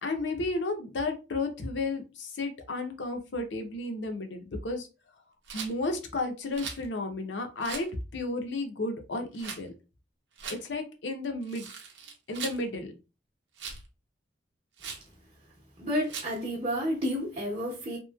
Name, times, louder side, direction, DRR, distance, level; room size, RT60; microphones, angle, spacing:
voice 1, 0.0-4.9 5.5-9.7 10.6-11.7 12.3-12.9, left 2 dB, 85° left, 0.6 m, -33 dB
Rattle, 5.4-5.7 6.5-6.9 7.6-7.9 9.3-9.6 10.4-10.6 11.4-12.6 13.6-13.9 14.8-15.1 16.1-16.4, right 6 dB, 90° right, 0.7 m, -39 dB
voice 2, 15.8-18.0, equal, 35° right, 0.7 m, -30 dB
3.0 x 2.7 x 2.2 m
head